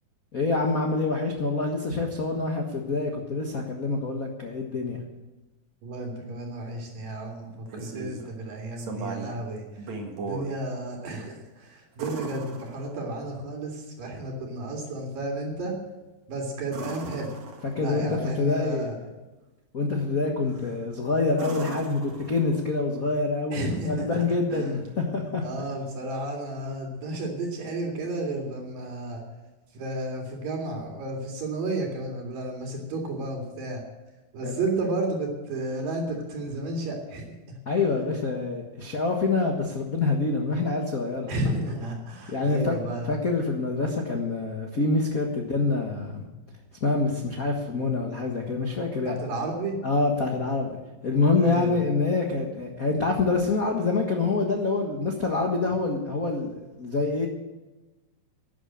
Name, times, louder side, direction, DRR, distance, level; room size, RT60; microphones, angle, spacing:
voice 1, 0.3-5.0 17.7-19.0 19.7-25.4 34.4-34.6 37.7-41.3 42.3-42.8 43.1-46.3 46.8-49.2 49.8-50.8 51.0-57.3, left 3 dB, 70° left, 1 dB, 0.8 m, -26 dB
voice 2, 5.8-9.9 10.2-15.8 16.3-17.3 17.8-18.9 23.5-24.2 24.5-24.8 25.4-29.2 29.7-33.8 34.3-37.4 41.3-43.2 49.1-49.8 51.4-51.8, right 2 dB, 70° right, -1 dB, 4.0 m, -32 dB
sound 1, 7.4-8.3 8.8-9.4 9.8-10.5 12.0-13.2 16.7-18.0 20.5-20.8 21.3-22.7 24.9-25.0, right 3 dB, 55° right, 2.9 m, -38 dB
12.0 x 9.9 x 8.8 m, 1.1 s
omnidirectional pair, 4.1 m